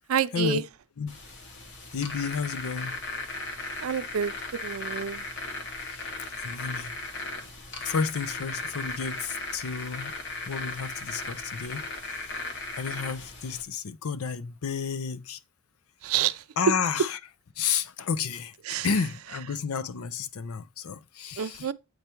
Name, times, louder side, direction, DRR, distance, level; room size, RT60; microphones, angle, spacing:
voice 1, 0.1-0.6 3.8-5.2 16.0-16.4 18.6-18.9 21.4-21.7, right 8 dB, 80° right, 0.5 m, -28 dB
sound 1, 1.1-13.6, left 3 dB, 60° left, 1.5 m, -37 dB
voice 2, 1.9-3.0 5.9-6.1 6.4-7.0 7.8-10.1 10.5-11.9 12.4-15.4 16.6-17.2 17.6-21.7, left 6 dB, 85° left, 0.6 m, -31 dB
8.0 x 3.4 x 4.4 m
head